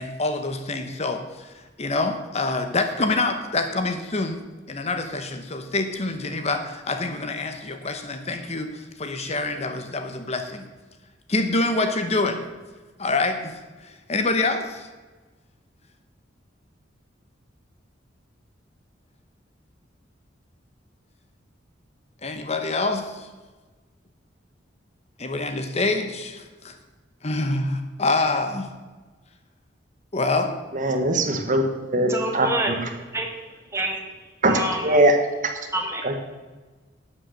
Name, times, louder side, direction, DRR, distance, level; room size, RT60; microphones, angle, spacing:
voice 1, 0.0-1.5 1.8-10.7 11.3-12.4 13.0-14.9 22.2-23.3 25.2-26.7 27.2-28.7 30.1-30.5, left 3 dB, 35° left, 7 dB, 1.0 m, -26 dB
voice 2, 30.7-32.9 34.4-35.2 36.0-36.1, right 1 dB, 45° right, 5 dB, 1.3 m, -21 dB
voice 3, 32.1-32.7 33.1-33.3 33.7-34.0 34.5-35.0 35.7-36.0, right 1 dB, 15° right, 1 dB, 2.0 m, -26 dB
12.0 x 7.8 x 6.6 m, 1.3 s
head